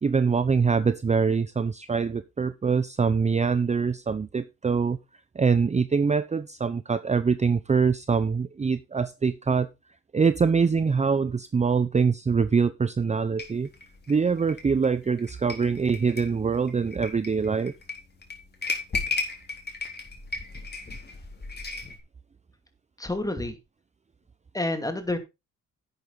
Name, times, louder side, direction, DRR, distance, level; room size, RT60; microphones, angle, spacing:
voice 1, 0.0-5.0 5.3-9.7 10.1-13.7 14.1-17.7, right 5 dB, 25° right, 13 dB, 0.7 m, -24 dB
wooden chimes, 13.4-22.0, left 4 dB, 35° left, 3.8 m, -35 dB
voice 2, 23.0-23.6 24.5-25.2, left 2 dB, 10° left, 8 dB, 2.6 m, -28 dB
11.0 x 8.6 x 4.0 m, 0.25 s
cardioid pair, 90°, 30 cm